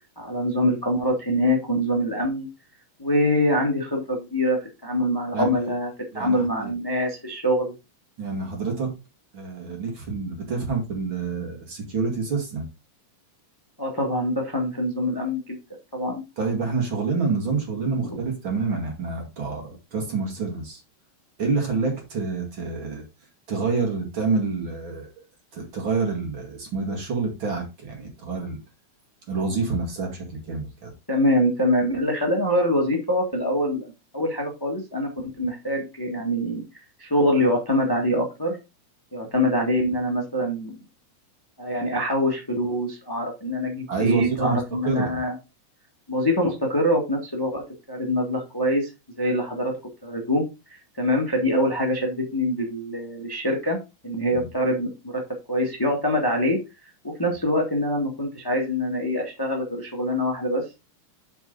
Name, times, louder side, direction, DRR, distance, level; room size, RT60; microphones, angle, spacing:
voice 1, 0.1-2.5 3.0-7.7 13.8-15.6 15.9-16.2 18.0-18.2 31.1-38.6 39.1-40.8 41.6-45.4 46.1-47.6 47.9-48.9 49.2-49.8 50.0-53.8 54.0-55.2 55.5-60.7, equal, 15° left, 1 dB, 0.7 m, -24 dB
voice 2, 6.1-6.7 8.2-8.9 9.3-12.7 16.4-20.8 21.4-23.0 23.5-25.2 25.5-28.6 29.3-30.9 43.9-44.6 44.8-45.2 54.3-54.5, right 4 dB, 40° right, 1 dB, 2.4 m, -27 dB
8.7 x 4.7 x 3.9 m, 0.26 s
omnidirectional pair, 3.8 m